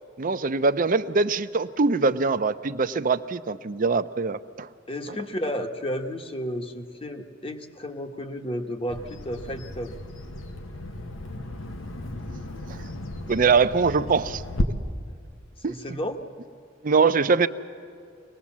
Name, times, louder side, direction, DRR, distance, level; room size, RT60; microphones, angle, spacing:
voice 1, 0.2-4.7 12.7-12.8 13.3-14.4 15.6-15.7 16.8-17.5, right 4 dB, 45° right, 11 dB, 0.6 m, -23 dB
voice 2, 4.9-9.9 15.6-16.3, equal, 30° left, 5 dB, 1.2 m, -32 dB
Bird vocalization bird call bird song, 8.9-14.6, left 1 dB, 90° left, 1.2 m, -34 dB
23.5 x 19.5 x 7.3 m, 2.3 s
head